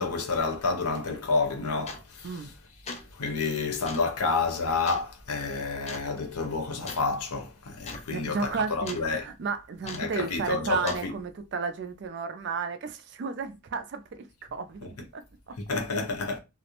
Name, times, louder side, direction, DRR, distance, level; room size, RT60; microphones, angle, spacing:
voice 1, 0.0-2.3 3.2-9.2 10.0-11.1 15.7-16.4, left 4 dB, 80° left, 0.6 m, -29 dB
sound 1, 1.0-1.1 1.9-2.2 2.7-3.1 3.9-4.1 4.9-5.1 5.9-6.1 6.9-7.1 7.4-7.5 7.8-8.1 8.3-9.1 9.9-10.2 10.9-11.1, left 4 dB, 30° left, 0.3 m, -40 dB
voice 2, 8.1-15.2 15.5-15.6, right 5 dB, 50° right, 0.4 m, -33 dB
2.4 x 2.0 x 2.8 m
head